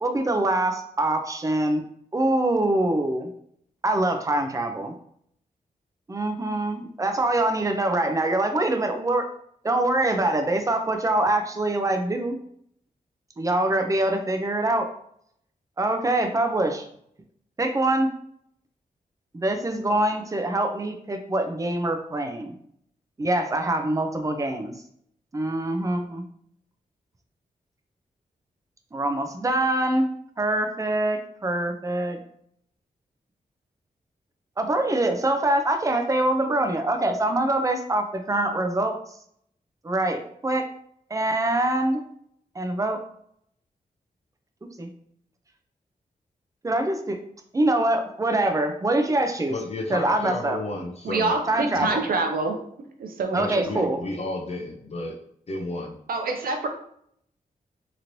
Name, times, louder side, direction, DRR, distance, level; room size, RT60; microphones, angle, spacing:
voice 1, 0.0-1.8 2.1-3.3 3.8-4.9 6.1-9.3 9.6-12.4 13.4-14.9 15.8-16.9 17.6-18.1 19.3-22.5 23.2-24.7 25.3-26.2 28.9-30.1 30.4-32.2 34.6-38.9 39.8-40.7 41.1-42.0 42.6-43.0 44.8-44.9 46.6-47.2 47.5-49.5 49.9-50.6 51.5-52.0 53.3-54.0, right 1 dB, 20° right, 5 dB, 0.4 m, -24 dB
voice 2, 49.5-51.3 51.7-52.0 53.3-55.2 55.5-55.9, left 2 dB, 45° left, 0 dB, 0.5 m, -32 dB
voice 3, 51.0-52.6 53.0-53.9 56.1-56.7, right 3 dB, 80° right, 4 dB, 0.5 m, -26 dB
3.0 x 2.9 x 2.6 m, 0.68 s
wide cardioid pair, 105°, 15 cm